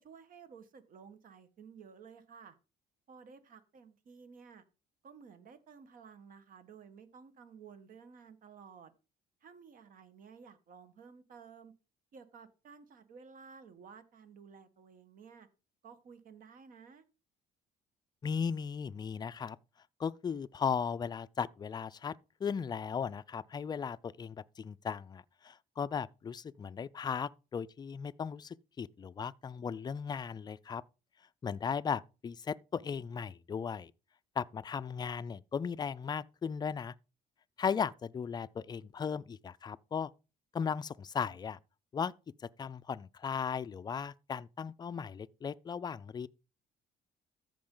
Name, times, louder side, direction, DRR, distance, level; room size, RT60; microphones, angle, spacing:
voice 1, 0.0-2.6 3.1-4.6 5.0-8.9 9.4-11.7 12.1-15.5 15.8-17.0, right 6 dB, 55° right, 1.4 m, -54 dB
voice 2, 18.2-19.6 20.0-22.1 22.4-30.8 31.4-33.9 34.4-36.9 37.6-40.1 40.5-41.6 41.9-42.1 42.6-46.3, left 6 dB, 25° left, 0.4 m, -36 dB
13.5 x 5.2 x 3.9 m
cardioid pair, 110°, 17 cm